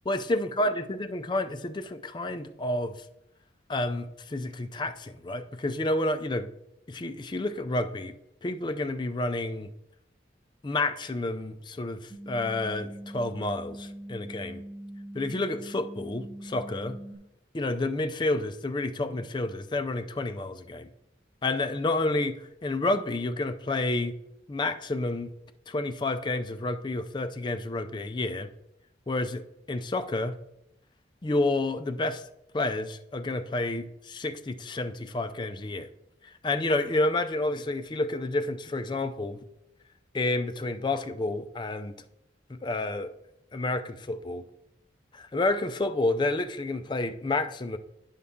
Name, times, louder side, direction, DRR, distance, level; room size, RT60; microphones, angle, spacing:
voice 1, 0.1-3.0 3.7-6.5 6.9-8.1 8.4-9.7 10.6-14.6 15.1-17.0 17.5-20.9 21.4-24.2 24.5-25.3 25.7-28.5 29.1-30.3 31.2-32.2 32.5-35.9 36.2-39.4 40.1-42.0 42.5-43.1 43.5-44.4 45.1-47.8, left 2 dB, 25° left, 9 dB, 0.4 m, -30 dB
sound 1, 12.1-17.1, right 1 dB, 5° left, 2.6 m, -42 dB
9.4 x 5.5 x 3.6 m, 0.85 s
head